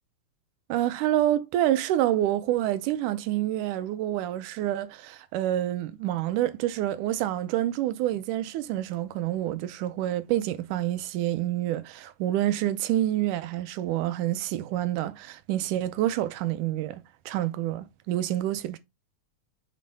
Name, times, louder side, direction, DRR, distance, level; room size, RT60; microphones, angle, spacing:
voice 1, 0.7-18.8, right 13 dB, 80° right, 2.0 m, -27 dB
7.6 x 3.8 x 3.4 m
omnidirectional pair, 3.7 m